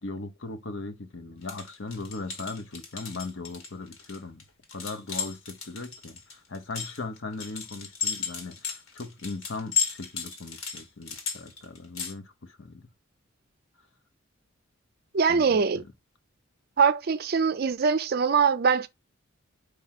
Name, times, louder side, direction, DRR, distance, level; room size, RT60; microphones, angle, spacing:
voice 1, 0.0-4.4 4.7-12.9 15.3-15.9, left 3 dB, 60° left, 0.8 m, -38 dB
sound 1, 1.4-12.1, left 6 dB, 80° left, 1.9 m, -34 dB
voice 2, 15.1-15.8 16.8-18.9, right 5 dB, 45° right, 0.4 m, -23 dB
4.9 x 4.8 x 5.7 m
head